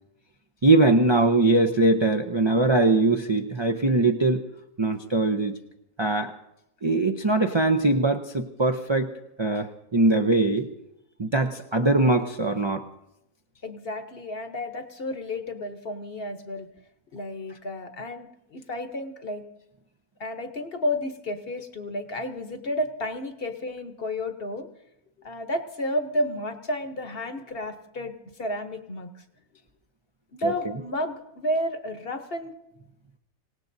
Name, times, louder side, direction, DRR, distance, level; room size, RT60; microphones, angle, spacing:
voice 1, 0.6-4.4 4.8-5.6 6.0-6.3 6.8-9.1 9.4-10.7 11.2-12.8 30.4-30.5, right 2 dB, 40° right, 3 dB, 0.4 m, -21 dB
voice 2, 13.6-16.7 17.1-19.4 20.2-24.7 25.2-29.1 30.3-32.5, left 1 dB, 45° left, 7 dB, 1.1 m, -31 dB
26.0 x 18.0 x 2.7 m, 0.86 s
omnidirectional pair, 1.5 m